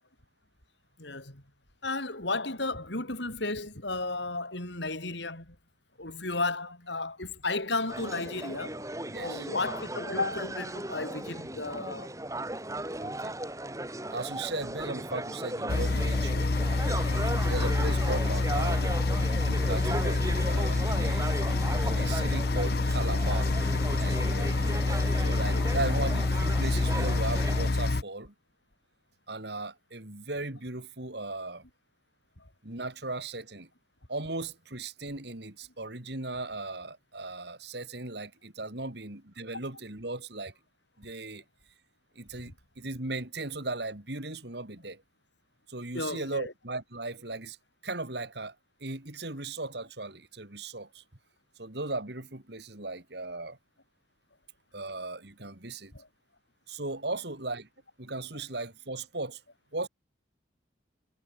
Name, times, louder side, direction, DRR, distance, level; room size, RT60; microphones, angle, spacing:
voice 1, 1.0-1.4 1.8-5.6 6.0-8.8 9.2-12.1 17.6-17.8 24.3-24.4 25.5-25.9 32.4-32.5 45.9-46.5 55.9-56.1, left 3 dB, 70° left, 5.6 m, -34 dB
sound 1, 7.9-27.7, right 1 dB, 15° right, 4.1 m, -36 dB
voice 2, 9.1-9.5 13.0-13.4 14.1-16.5 17.4-18.8 19.1-21.3 21.8-23.5 23.8-24.5 25.2-28.3 29.3-31.6 32.6-33.7 34.1-40.5 41.0-41.4 42.2-45.0 45.7-47.6 47.8-48.5 48.8-51.0 51.6-53.6 54.7-55.9 56.7-57.7 58.0-59.4 59.7-59.9, right 2 dB, 60° right, 2.8 m, -37 dB
sound 2, 15.7-28.0, left 3 dB, 55° left, 0.7 m, -27 dB
head